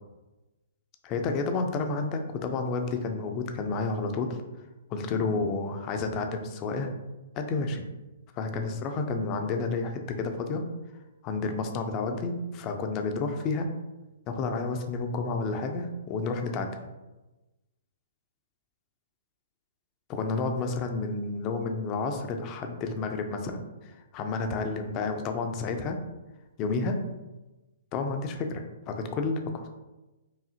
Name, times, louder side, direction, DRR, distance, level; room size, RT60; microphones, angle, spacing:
voice 1, 1.0-4.4 4.9-6.9 7.4-7.8 8.3-10.6 11.2-13.7 14.3-16.7 20.1-26.0 26.6-27.0 27.9-29.7, left 3 dB, 30° left, 5 dB, 0.5 m, -30 dB
4.9 x 2.7 x 2.7 m, 1.1 s
figure-of-eight pair, 120°, 0 cm